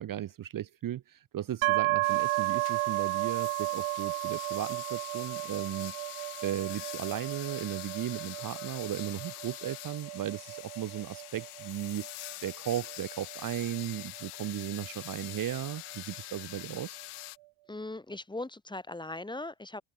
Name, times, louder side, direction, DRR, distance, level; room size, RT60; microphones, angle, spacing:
voice 1, 0.0-5.9 6.4-12.1 12.4-17.0, right 11 dB, 40° right, 1.0 m, -36 dB
sound 1, 1.6-15.3, right 22 dB, 80° right, 0.7 m, -34 dB
sound 2, 2.0-17.4, left 19 dB, 90° left, 3.2 m, -45 dB
voice 2, 17.7-19.8, left 2 dB, 10° left, 2.0 m, -39 dB
cardioid pair, 140°, 49 cm